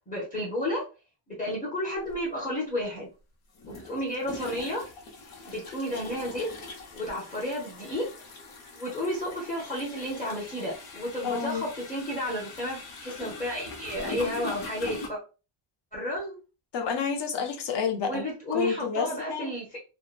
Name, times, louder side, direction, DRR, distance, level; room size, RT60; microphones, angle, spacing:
voice 1, 0.1-0.9 1.3-3.1 3.7-4.9 5.5-8.1 8.8-15.2 15.9-16.4 18.1-19.8, left 1 dB, 15° left, 0.8 m, -32 dB
sound 1, 2.1-2.2 3.5-15.1, left 3 dB, 75° left, 1.0 m, -42 dB
voice 2, 11.2-11.6 16.7-18.2 18.5-19.5, left 6 dB, 60° left, 0.7 m, -29 dB
2.8 x 2.1 x 2.5 m
cardioid pair, 165°, 48 cm